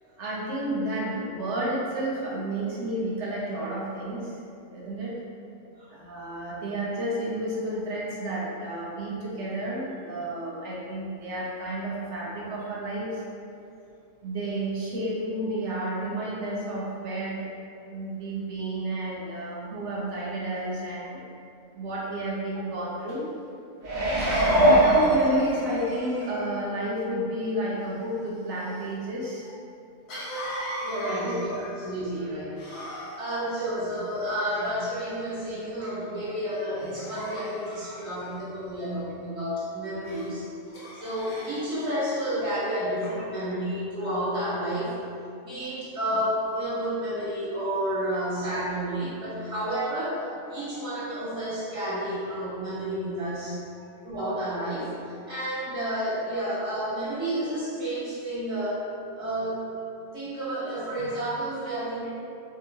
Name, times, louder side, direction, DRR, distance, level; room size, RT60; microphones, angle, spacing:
voice 1, 0.2-4.4 4.7-5.1 5.9-13.2 14.2-17.4 17.9-21.2 21.7-23.3 24.6-29.5 31.1-31.3 32.9-33.0 37.9-38.3 41.0-41.1, right 1 dB, 65° right, -5 dB, 0.9 m, -31 dB
Cough, 23.1-23.2 24.2-26.6 30.1-31.9 32.6-33.4 34.2-34.9 35.5-35.8 36.8-38.4 40.0-40.3 40.7-41.6, equal, 75° left, 1.0 m, -38 dB
sound 1, 23.8-25.9 26.4-26.5, right 1 dB, 80° right, 0.4 m, -21 dB
voice 2, 30.8-32.5 32.9-44.9 45.4-53.6 54.0-54.9 55.2-58.9 59.1-59.6 60.1-62.1, right 1 dB, 30° right, -11 dB, 0.9 m, -31 dB
2.8 x 2.6 x 2.6 m, 2.6 s
omnidirectional pair, 1.4 m